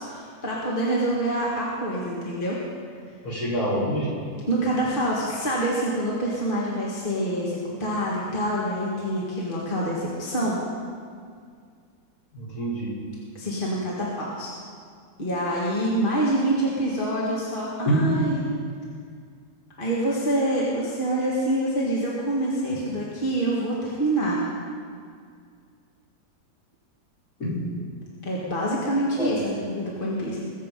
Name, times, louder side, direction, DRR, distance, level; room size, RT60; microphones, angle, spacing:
voice 1, 0.0-2.6 4.5-10.6 13.4-14.5 15.2-18.4 19.8-24.4 28.2-30.4, right 1 dB, 30° left, -5 dB, 2.0 m, -26 dB
voice 2, 3.2-4.1 12.3-12.9 17.8-18.2 27.4-27.5 29.2-29.4, right 1 dB, 55° left, -8 dB, 5.1 m, -26 dB
21.5 x 7.7 x 5.4 m, 2.1 s
omnidirectional pair, 1.8 m